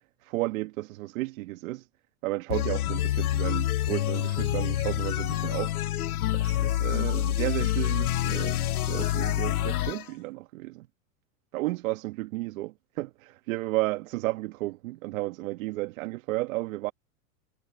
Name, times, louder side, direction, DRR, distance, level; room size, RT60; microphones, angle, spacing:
voice 1, 0.2-1.9 2.2-5.8 6.3-8.6 8.9-10.9 11.5-16.9, right 19 dB, 65° right, 1.5 m, -33 dB
sound 1, 2.5-10.0, left 13 dB, 90° left, 0.8 m, -27 dB
hypercardioid pair, 110°, 43 cm